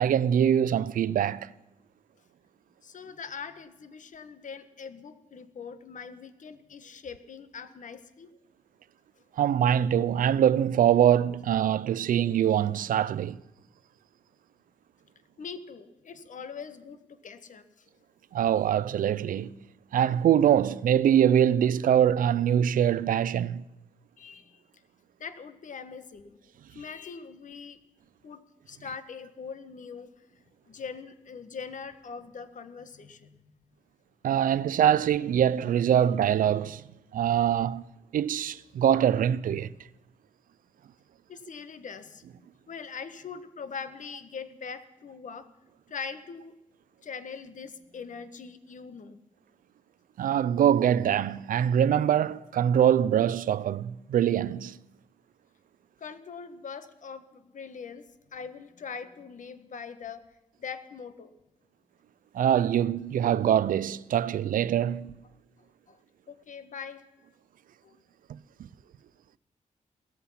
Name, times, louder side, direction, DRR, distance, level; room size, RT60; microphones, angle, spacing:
voice 1, 0.0-1.5 9.4-13.4 18.3-19.6 19.9-23.6 34.2-36.8 37.1-37.8 38.1-39.7 50.2-54.8 62.3-65.2 68.3-68.4, right 9 dB, 90° right, 0.5 m, -23 dB
voice 2, 2.8-8.3 15.4-17.9 24.2-24.6 25.2-26.4 26.7-27.8 28.2-30.3 30.7-33.4 41.3-42.2 42.7-45.5 45.9-46.5 47.0-49.2 56.0-60.3 60.6-61.3 65.9-66.0 66.3-67.0 67.8-68.0, left 6 dB, 65° left, 1.5 m, -42 dB
17.0 x 14.0 x 5.7 m
cardioid pair, 85°, 14 cm